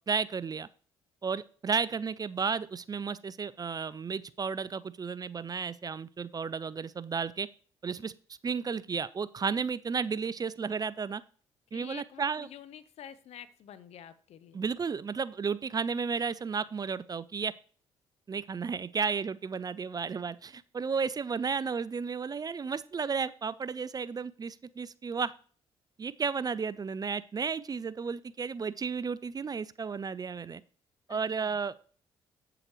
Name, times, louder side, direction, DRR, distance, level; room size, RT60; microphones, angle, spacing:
voice 1, 0.1-0.7 1.2-7.5 7.8-8.1 8.4-11.2 11.7-12.5 14.5-17.5 18.3-25.3 26.0-30.6 31.1-31.7, right 5 dB, 35° right, 18 dB, 0.5 m, -33 dB
voice 2, 11.7-14.6 31.1-31.6, left 9 dB, 65° left, 13 dB, 0.8 m, -49 dB
8.1 x 7.6 x 3.1 m, 0.43 s
hypercardioid pair, 55°, 12 cm